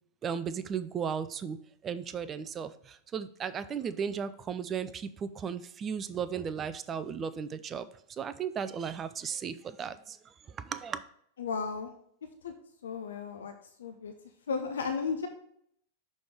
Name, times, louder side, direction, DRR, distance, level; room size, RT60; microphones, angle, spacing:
voice 1, 0.2-10.2 10.5-11.0, right 7 dB, 25° right, 13 dB, 0.4 m, -36 dB
voice 2, 11.4-11.9 12.4-12.5 12.8-13.5 13.8-14.1 14.5-15.3, left 5 dB, 65° left, 8 dB, 0.5 m, -34 dB
6.2 x 3.4 x 5.8 m, 0.69 s
figure-of-eight pair, 90°, 0 cm